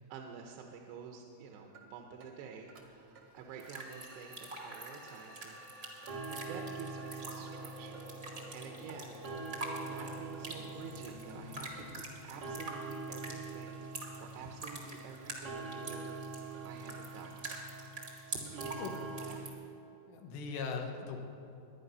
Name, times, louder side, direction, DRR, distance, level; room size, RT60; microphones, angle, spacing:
voice 1, 0.0-5.6 6.3-9.3 9.8-17.7 18.1-19.4, right 5 dB, 80° right, 2 dB, 2.9 m, -50 dB
sound 1, 1.7-1.8 2.2-2.3 2.7-2.8 3.1-3.2 3.6-3.7 4.1-4.2 4.6-4.7 5.1-5.2 5.6-5.7 6.0-19.3, right 3 dB, 60° right, 1.5 m, -45 dB
sound 2, 3.6-19.5, right 2 dB, 45° right, 0.9 m, -47 dB
sound 3, 3.9-12.0, equal, 25° left, 1.4 m, -52 dB
voice 2, 20.1-21.2, left 5 dB, 90° left, 3 dB, 3.4 m, -39 dB
21.0 x 10.0 x 5.5 m, 2.8 s
omnidirectional pair, 4.8 m